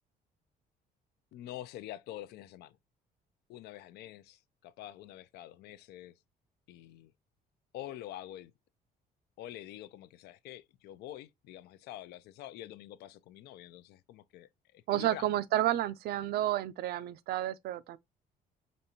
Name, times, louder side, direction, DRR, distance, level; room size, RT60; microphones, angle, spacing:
voice 1, 1.3-2.8 3.5-6.2 6.7-7.1 7.7-8.5 9.4-15.4, left 13 dB, 75° left, 0.5 m, -46 dB
voice 2, 14.9-18.0, right 13 dB, 70° right, 0.4 m, -31 dB
5.2 x 2.5 x 2.8 m
cardioid pair, 110°, 17 cm